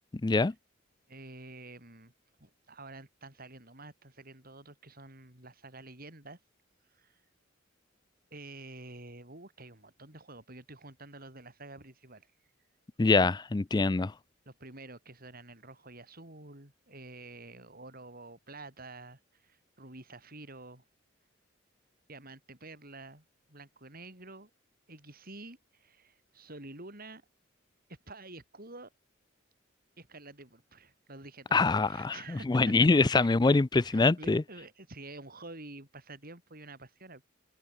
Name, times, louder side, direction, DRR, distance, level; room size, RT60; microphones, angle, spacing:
voice 1, 0.2-0.5 13.0-14.1 31.5-34.4, left 3 dB, 20° left, 0.4 m, -24 dB
voice 2, 1.1-2.1 2.4-6.4 6.9-7.2 8.3-12.3 14.5-20.8 22.1-24.5 24.9-27.2 28.1-28.9 30.0-37.2, right 2 dB, 50° right, 7.3 m, -49 dB
head